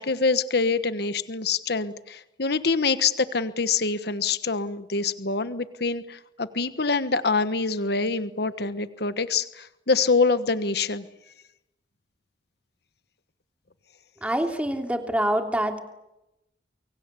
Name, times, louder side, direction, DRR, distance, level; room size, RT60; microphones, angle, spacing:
voice 1, 0.0-11.1, left 4 dB, 60° left, 12 dB, 1.3 m, -25 dB
voice 2, 14.2-15.8, right 1 dB, 5° right, 4 dB, 3.0 m, -25 dB
30.0 x 23.5 x 8.2 m, 0.92 s
head